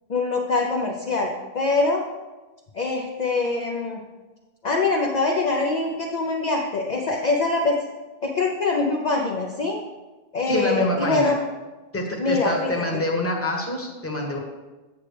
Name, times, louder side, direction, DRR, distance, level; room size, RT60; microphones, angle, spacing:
voice 1, 0.1-2.0 2.7-4.0 4.6-7.7 8.2-9.8 10.3-11.4 12.2-13.0, left 3 dB, 45° left, 0 dB, 0.7 m, -24 dB
voice 2, 10.5-11.3 11.9-14.4, left 1 dB, 15° left, 0 dB, 1.1 m, -26 dB
8.4 x 7.2 x 3.3 m, 1.2 s
omnidirectional pair, 1.1 m